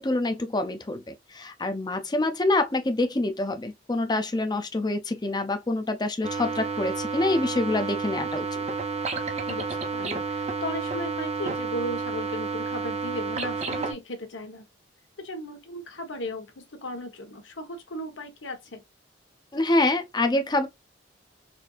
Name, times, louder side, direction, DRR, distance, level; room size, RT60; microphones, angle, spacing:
voice 1, 0.0-8.6 19.5-20.7, left 2 dB, 20° left, 0.5 m, -26 dB
sound 1, 6.2-13.9, right 4 dB, 35° right, 0.6 m, -30 dB
voice 2, 9.5-14.6 15.2-18.8, left 1 dB, 85° left, 1.0 m, -36 dB
4.2 x 2.7 x 2.3 m
head